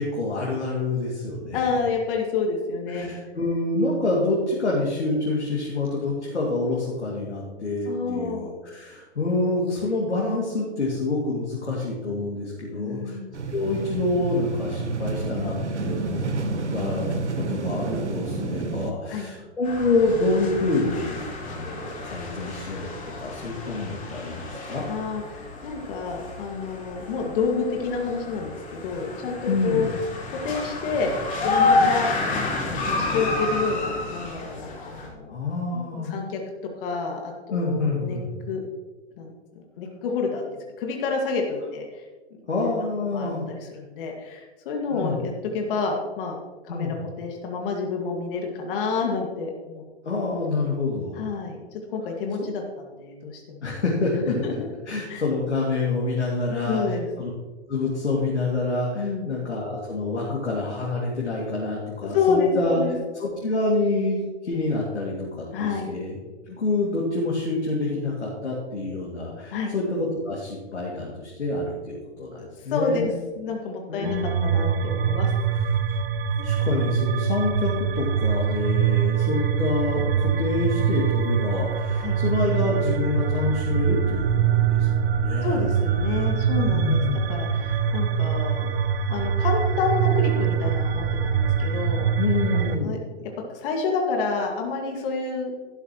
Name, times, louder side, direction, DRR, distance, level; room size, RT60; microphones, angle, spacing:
voice 1, 0.0-1.6 2.9-13.2 13.5-16.3 16.7-24.8 29.5-29.9 35.3-36.1 37.5-38.3 42.5-43.5 44.9-45.2 46.7-47.0 50.0-51.2 53.6-54.3 54.9-57.3 57.7-62.8 63.2-66.2 66.5-73.1 73.9-74.6 76.4-84.2 84.5-85.7 86.7-87.2 92.2-93.0, left 2 dB, 90° left, -4 dB, 2.6 m, -27 dB
voice 2, 1.5-3.1 7.9-8.5 12.7-13.3 19.1-19.3 24.9-29.9 30.4-31.1 31.4-32.1 32.9-35.3 35.7-36.4 36.8-38.2 38.5-38.6 39.2-39.3 39.8-40.4 40.8-42.0 42.3-46.4 46.6-49.8 51.1-51.6 51.9-53.6 54.4-54.7 55.1-55.2 56.7-57.1 58.9-59.3 62.0-63.0 65.5-65.9 69.5-69.7 72.4-74.2 74.4-75.3 81.9-82.2 85.4-87.0 87.3-88.7 89.1-92.1 92.5-95.5, left 4 dB, 50° left, 1 dB, 2.1 m, -29 dB
sound 1, 13.3-18.9, right 3 dB, 90° right, 1.2 m, -29 dB
sound 2, 19.6-35.1, left 3 dB, 25° left, 3.3 m, -29 dB
sound 3, 74.0-92.8, right 7 dB, 60° right, 0.8 m, -24 dB
12.5 x 11.0 x 3.1 m, 1.3 s
hypercardioid pair, 120°, 34 cm